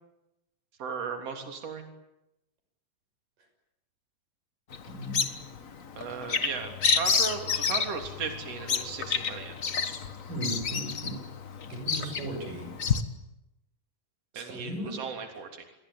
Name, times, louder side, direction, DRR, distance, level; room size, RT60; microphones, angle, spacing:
voice 1, 0.8-1.8 6.0-9.6 14.4-15.6, right 5 dB, 50° right, 4 dB, 4.3 m, -36 dB
Bird vocalization bird call bird song, 4.7-13.0, left 6 dB, 80° left, 0.7 m, -30 dB
voice 2, 4.9-5.2 10.3-11.1 11.7-12.7 14.3-15.0, right 1 dB, 80° right, 5 dB, 8.2 m, -36 dB
28.5 x 22.0 x 8.7 m, 0.90 s
omnidirectional pair, 3.7 m